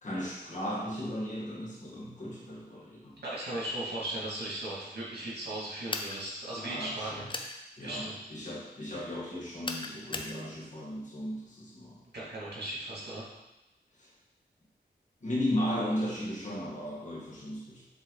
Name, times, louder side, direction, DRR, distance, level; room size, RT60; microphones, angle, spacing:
voice 1, 0.0-3.2 6.6-7.3 7.8-12.0 13.9-14.1 15.2-17.8, equal, 45° left, -5 dB, 1.7 m, -36 dB
voice 2, 3.2-7.3 7.8-8.2 12.1-13.3, right 1 dB, 75° right, -6 dB, 2.2 m, -37 dB
sound 1, 5.9-6.2 7.3-7.5 9.6-10.3, left 3 dB, 30° left, 0.5 m, -35 dB
7.3 x 3.4 x 4.0 m, 0.94 s
wide cardioid pair, 120°, 17 cm